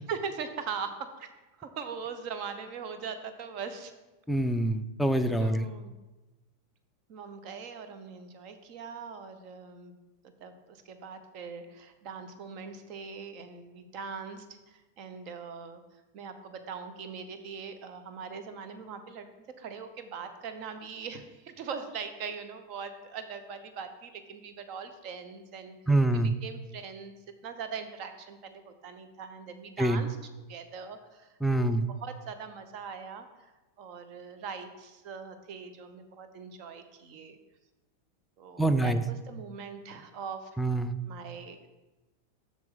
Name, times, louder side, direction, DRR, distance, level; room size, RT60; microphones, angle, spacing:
voice 1, 0.1-1.3 1.6-3.9 5.4-5.9 7.1-9.9 10.2-15.8 16.1-19.3 19.6-25.8 26.1-27.1 27.4-30.2 30.5-33.5 33.8-37.4 38.4-40.5 41.1-41.7, right 6 dB, 40° right, 9 dB, 0.8 m, -41 dB
voice 2, 4.3-5.7 25.9-26.3 29.8-30.0 31.4-31.8 38.6-39.0 40.6-40.9, right 1 dB, ahead, 7 dB, 0.4 m, -25 dB
7.3 x 6.3 x 3.7 m, 1.1 s
figure-of-eight pair, 90°, 0 cm